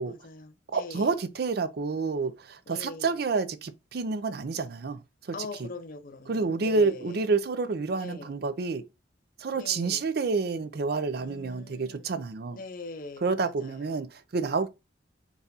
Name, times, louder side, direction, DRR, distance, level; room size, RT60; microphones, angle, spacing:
voice 1, 0.1-1.1 2.7-3.1 5.3-7.2 7.9-8.3 9.5-10.0 11.2-12.1 12.5-14.0, left 3 dB, 50° left, 0.5 m, -43 dB
voice 2, 0.7-5.0 5.3-5.4 5.6-5.7 6.3-8.8 9.4-12.6 13.2-14.7, right 4 dB, 55° right, 0.5 m, -29 dB
4.0 x 2.4 x 3.9 m
head